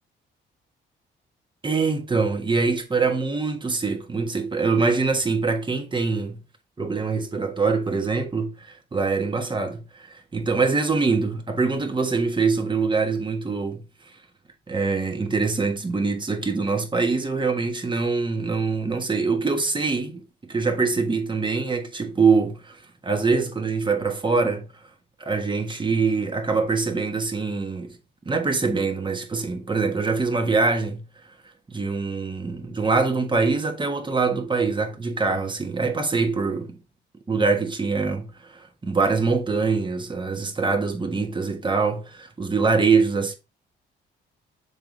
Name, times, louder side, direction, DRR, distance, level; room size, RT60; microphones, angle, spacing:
voice 1, 1.6-6.4 6.8-13.8 14.7-22.8 23.0-24.7 25.2-28.0 28.2-31.0 31.7-36.8 37.3-43.3, right 4 dB, 25° right, 1.4 m, -24 dB
6.8 x 3.8 x 3.8 m
cardioid pair, 90°, 20 cm